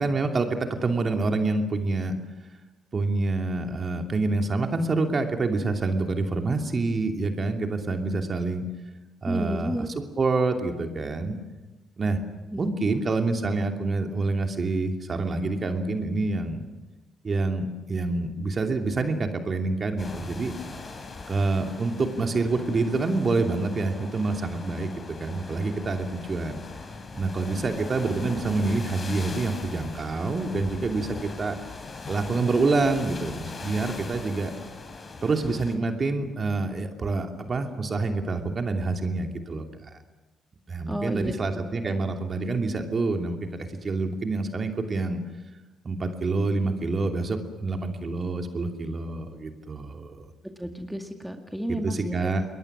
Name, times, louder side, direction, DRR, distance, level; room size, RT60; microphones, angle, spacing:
voice 1, 0.0-2.2 2.9-8.6 9.2-9.9 10.2-11.4 12.0-12.2 12.5-16.6 17.2-20.5 21.3-24.9 25.2-26.6 27.1-31.5 32.1-34.5 35.2-39.6 40.7-43.5 43.8-45.2 45.8-50.3 51.7-52.5, right 3 dB, 35° right, 4 dB, 2.9 m, -27 dB
voice 2, 9.2-9.9 12.5-12.6 40.9-41.9 50.6-52.2, equal, 5° right, 4 dB, 2.1 m, -32 dB
sound 1, 20.0-35.8, left 3 dB, 35° left, 3.6 m, -40 dB
29.0 x 21.5 x 6.2 m, 1.1 s
figure-of-eight pair, 45°, 0 cm